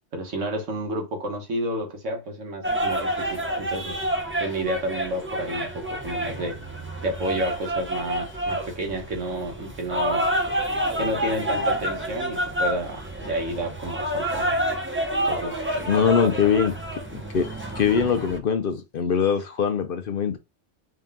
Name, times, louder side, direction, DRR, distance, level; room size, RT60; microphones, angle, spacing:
voice 1, 0.1-4.0 4.4-6.6 7.0-10.3 11.0-14.5 15.2-15.6 16.2-16.3, right 1 dB, 85° right, 1.5 m, -30 dB
sound 1, 2.6-18.4, right 1 dB, 20° right, 0.4 m, -28 dB
voice 2, 15.9-16.7 17.1-17.5 17.8-20.4, left 7 dB, 60° left, 0.7 m, -22 dB
3.7 x 2.7 x 3.5 m
omnidirectional pair, 1.2 m